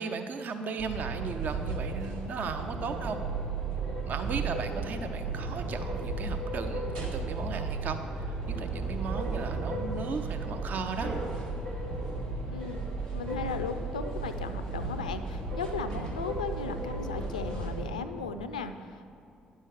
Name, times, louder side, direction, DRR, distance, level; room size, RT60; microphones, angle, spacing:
voice 1, 0.0-3.2 4.0-11.2, right 5 dB, 45° right, 7 dB, 0.5 m, -36 dB
sound 1, 0.8-17.9, right 3 dB, 70° right, 1.6 m, -34 dB
voice 2, 13.1-19.0, left 5 dB, 80° left, 9 dB, 0.4 m, -36 dB
10.5 x 6.3 x 6.2 m, 2.5 s
figure-of-eight pair, 45°, 4 cm